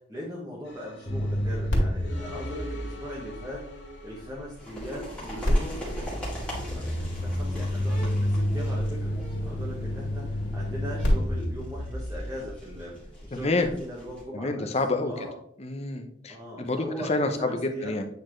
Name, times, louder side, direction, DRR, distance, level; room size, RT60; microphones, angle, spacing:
voice 1, 0.1-3.6 4.0-5.9 6.7-6.8 7.2-12.9 13.2-14.7 15.0-15.4 16.3-18.0, equal, 15° right, -5 dB, 1.3 m, -39 dB
sound 1, 0.7-13.4, left 1 dB, 65° left, 1.2 m, -48 dB
sound 2, 1.1-4.2 5.4-12.4, equal, 80° left, 2.0 m, -29 dB
sound 3, 4.6-14.2, equal, 5° left, 2.1 m, -41 dB
voice 2, 13.3-13.7 14.3-15.3 15.6-18.1, left 2 dB, 35° left, 6 dB, 0.7 m, -28 dB
8.4 x 4.2 x 3.2 m, 0.68 s
head